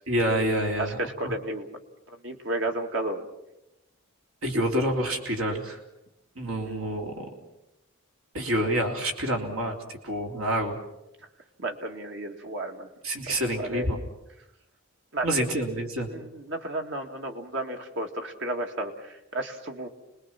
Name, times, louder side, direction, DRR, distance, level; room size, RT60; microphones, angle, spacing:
voice 1, 0.1-1.3 4.4-5.8 6.4-7.3 8.3-9.8 10.0-10.8 13.0-14.0 15.2-16.1, right 1 dB, 75° right, 1 dB, 3.6 m, -27 dB
voice 2, 0.8-1.7 2.1-3.3 6.6-6.8 11.6-12.9 13.3-13.9 15.1-15.3 16.1-19.9, right 1 dB, 55° right, 4 dB, 2.3 m, -33 dB
30.0 x 21.0 x 6.0 m, 0.90 s
head